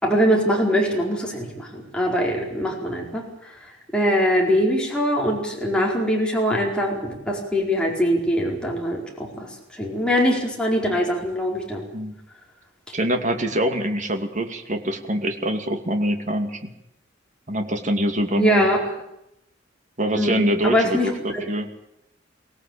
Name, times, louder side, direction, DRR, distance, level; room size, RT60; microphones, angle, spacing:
voice 1, 0.0-3.3 3.9-9.5 9.7-11.9 18.3-18.8 20.2-21.4, equal, 5° left, -2 dB, 4.7 m, -22 dB
voice 2, 12.9-16.7 17.5-18.7 20.0-21.7, equal, 40° right, 6 dB, 2.5 m, -24 dB
23.5 x 17.5 x 8.7 m, 0.83 s
head